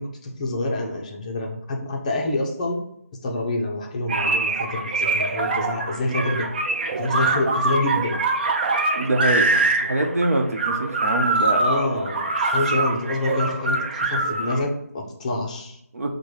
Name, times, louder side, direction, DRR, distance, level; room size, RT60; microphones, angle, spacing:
voice 1, 0.0-2.8 3.2-6.5 6.9-8.2 11.6-15.8, left 2 dB, 25° left, 1 dB, 0.6 m, -27 dB
sound 1, 4.1-14.6, right 3 dB, 40° right, 0.5 m, -24 dB
voice 2, 8.9-11.8 15.9-16.1, right 2 dB, 70° right, 3 dB, 0.8 m, -24 dB
4.8 x 2.2 x 4.6 m, 0.75 s
figure-of-eight pair, 165°, 8 cm